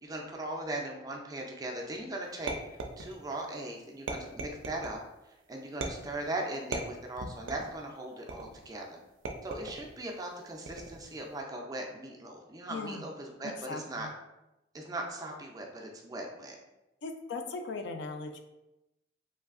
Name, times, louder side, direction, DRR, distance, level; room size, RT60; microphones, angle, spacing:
voice 1, 0.0-2.5 3.0-5.0 5.5-9.0 9.4-14.1 14.7-16.6, right 1 dB, 20° right, 1 dB, 0.3 m, -39 dB
sound 1, 2.5-3.4 4.1-5.0 5.8-6.2 6.7-7.8 8.3-8.7 9.2-9.9 10.7-11.1, right 3 dB, 90° right, 0.4 m, -38 dB
voice 2, 12.7-13.0 13.4-14.1 17.0-18.5, left 3 dB, 70° left, 6 dB, 0.3 m, -39 dB
3.1 x 2.6 x 2.4 m, 0.95 s
head